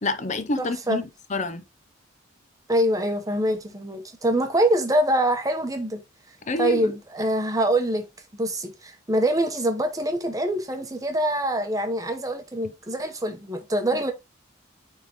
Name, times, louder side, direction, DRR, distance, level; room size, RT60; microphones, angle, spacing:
voice 1, 0.0-1.6 6.5-6.9 13.9-14.0, left 2 dB, 35° left, 0.6 m, -28 dB
voice 2, 0.6-1.0 2.7-6.0 6.6-8.1 8.4-14.1, right 1 dB, 15° right, 0.9 m, -24 dB
9.4 x 3.7 x 3.0 m
head